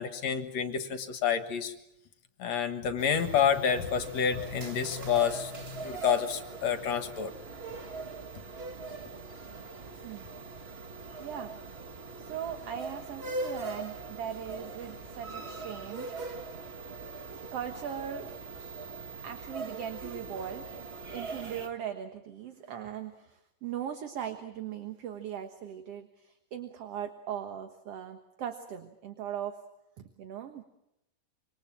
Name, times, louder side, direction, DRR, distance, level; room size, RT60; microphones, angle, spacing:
voice 1, 0.0-1.7 2.4-7.3, left 7 dB, 65° left, 8 dB, 2.7 m, -29 dB
sound 1, 3.0-21.7, right 3 dB, 35° right, 1.1 m, -41 dB
voice 2, 11.2-11.5 12.2-16.4 17.5-18.3 19.2-29.6 30.0-30.6, right 9 dB, 60° right, 7 dB, 2.3 m, -39 dB
26.0 x 25.0 x 7.5 m, 0.84 s
omnidirectional pair, 3.4 m